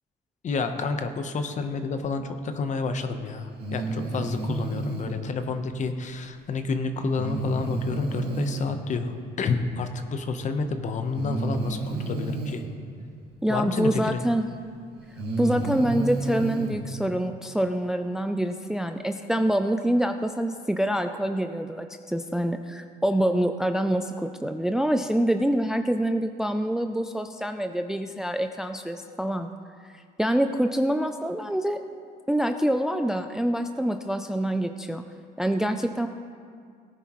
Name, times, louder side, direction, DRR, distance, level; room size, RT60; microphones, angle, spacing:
voice 1, 0.4-12.6 13.5-14.2, left 4 dB, 45° left, 7 dB, 1.0 m, -29 dB
Breathing, 3.6-5.2 7.1-8.8 10.1-10.2 11.1-12.7 14.2-14.3 15.0-16.8, right 3 dB, 75° right, 2.1 m, -31 dB
voice 2, 13.4-14.5 15.4-29.5 30.2-31.8 32.3-35.0 35.4-36.1, right 1 dB, 5° right, 7 dB, 0.4 m, -26 dB
18.0 x 10.0 x 3.1 m, 2.2 s
cardioid pair, 110°, 17 cm